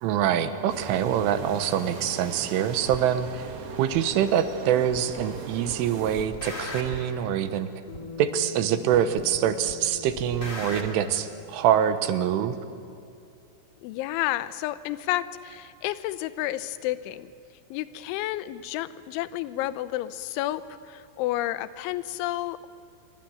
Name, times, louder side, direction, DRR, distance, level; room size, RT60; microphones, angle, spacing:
voice 1, 0.0-3.5 3.8-7.7 8.2-12.6, right 9 dB, 85° right, 10 dB, 3.7 m, -25 dB
sound 1, 0.7-6.3, right 4 dB, 55° right, 3.4 m, -39 dB
sound 2, 2.9-3.0 3.9-4.0 4.9-5.4 5.7-7.1 7.9-8.0 8.9-9.4 9.7-10.9, left 2 dB, 25° left, 1.9 m, -38 dB
Bass guitar, 7.9-12.3, left 6 dB, 55° left, 5.4 m, -45 dB
voice 2, 13.8-17.3 17.7-22.7, left 15 dB, 80° left, 14 dB, 3.2 m, -31 dB
26.5 x 23.5 x 9.3 m, 2.6 s
omnidirectional pair, 5.6 m